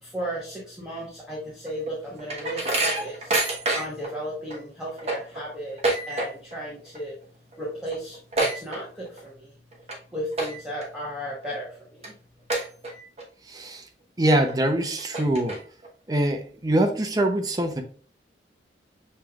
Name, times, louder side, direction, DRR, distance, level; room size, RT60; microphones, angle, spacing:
voice 1, 0.0-7.2 7.6-9.6 10.1-12.1, equal, 5° right, -6 dB, 1.1 m, -35 dB
sound 1, 1.7-4.1 4.5-4.6 4.9-6.6 6.9-7.2 7.5-7.6 7.9-9.3 9.7-9.9 10.3-10.8 11.3-11.4 12.0-12.1 12.5-13.2 13.6-13.7 14.5-14.6 15.0-15.9, right 2 dB, 35° right, 1.1 m, -27 dB
voice 2, 13.5-13.8 14.2-15.6 16.1-17.8, right 1 dB, 20° right, 4 dB, 0.6 m, -23 dB
6.7 x 3.1 x 2.3 m, 0.41 s
head